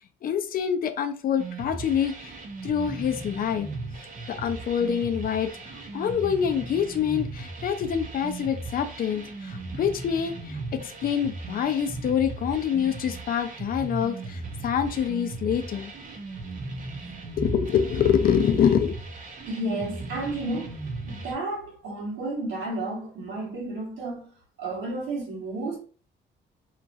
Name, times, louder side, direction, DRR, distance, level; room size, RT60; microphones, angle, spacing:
voice 1, 0.2-2.3 2.6-3.7 4.3-15.9 17.4-18.9, left 8 dB, 50° left, 0.4 m, -26 dB
sound 1, 1.4-21.3, right 3 dB, 45° right, 0.7 m, -37 dB
voice 2, 19.5-20.8 21.0-24.3 24.6-25.8, right 2 dB, 85° right, 1.4 m, -32 dB
2.9 x 2.4 x 2.5 m
cardioid pair, 125°, 19 cm